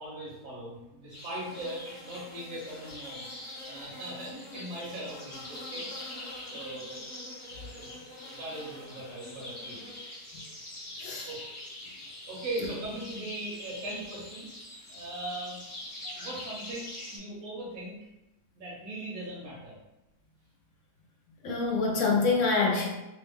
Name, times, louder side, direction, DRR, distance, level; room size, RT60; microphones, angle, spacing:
voice 1, 0.0-3.3 3.7-5.8 6.5-7.0 7.8-7.9 8.3-9.8 11.2-11.4 12.3-14.5 14.9-15.6 16.1-18.0 18.5-19.8, right 1 dB, 65° right, -6 dB, 1.2 m, -39 dB
sound 1, 1.1-17.2, left 1 dB, 35° left, 0.5 m, -43 dB
voice 2, 21.4-22.9, left 4 dB, 65° left, 0 dB, 0.9 m, -26 dB
3.0 x 2.1 x 3.4 m, 0.97 s
omnidirectional pair, 1.6 m